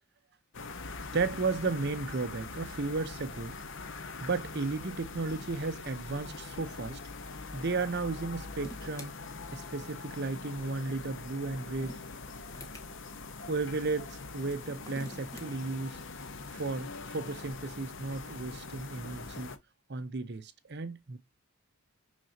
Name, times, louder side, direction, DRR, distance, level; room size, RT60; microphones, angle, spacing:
sound 1, 0.5-19.6, left 3 dB, 55° left, 0.9 m, -43 dB
voice 1, 1.1-3.5 4.2-7.0 7.5-9.1 9.5-12.0 13.5-16.0 16.5-19.5 19.9-21.2, right 3 dB, 50° right, 0.7 m, -34 dB
sound 2, 8.2-9.1 11.3-12.9 14.4-15.5, equal, 15° left, 1.2 m, -48 dB
6.2 x 5.8 x 2.7 m
head